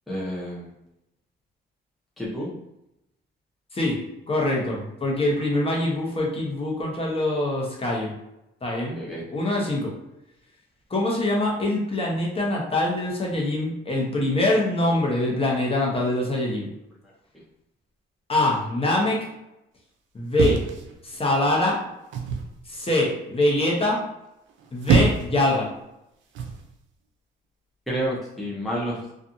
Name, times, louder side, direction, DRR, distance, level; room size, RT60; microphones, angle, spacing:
voice 1, 0.1-0.7 2.2-2.5 8.9-9.2 27.9-29.0, equal, ahead, -5 dB, 0.6 m, -29 dB
voice 2, 4.3-8.1 8.6-9.0 9.3-9.9 10.9-16.7 18.3-19.3 20.1-20.6 21.0-21.8 22.7-24.0 24.7-25.7, left 1 dB, 30° left, -2 dB, 0.8 m, -24 dB
sound 1, 20.3-21.4 22.1-22.5 24.5-25.4 26.3-26.6, right 4 dB, 70° right, 0.5 m, -24 dB
2.6 x 2.4 x 2.5 m, 0.88 s
cardioid pair, 90°, 20 cm